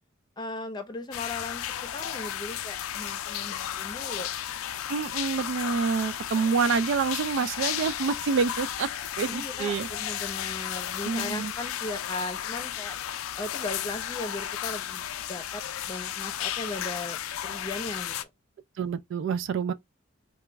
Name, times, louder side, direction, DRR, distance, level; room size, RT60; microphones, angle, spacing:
voice 1, 0.4-4.3 9.3-12.9 13.4-18.2, left 2 dB, 20° left, 0.7 m, -37 dB
sound 1, 1.1-18.2, left 11 dB, 90° left, 0.4 m, -34 dB
voice 2, 4.9-8.9 9.2-9.9 11.1-11.5 18.8-19.7, right 5 dB, 65° right, 0.3 m, -27 dB
3.0 x 2.3 x 3.3 m
head